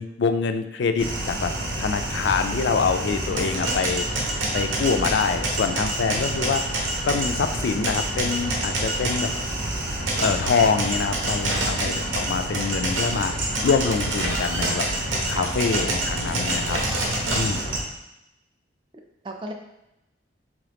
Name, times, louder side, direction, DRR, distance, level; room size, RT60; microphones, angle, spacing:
voice 1, 0.0-1.5 1.8-4.1 4.5-6.6 7.0-9.3 10.2-14.9 15.3-16.8 17.4-17.7, left 5 dB, 60° left, 7 dB, 0.3 m, -25 dB
sound 1, 1.0-17.8, right 1 dB, 90° right, 0.9 m, -27 dB
voice 2, 3.3-3.9 6.1-6.2 9.1-9.3 11.8-12.0 15.3-15.5 17.0-17.3 19.2-19.5, right 2 dB, 25° right, 4 dB, 0.4 m, -37 dB
3.7 x 3.0 x 3.4 m, 0.89 s
head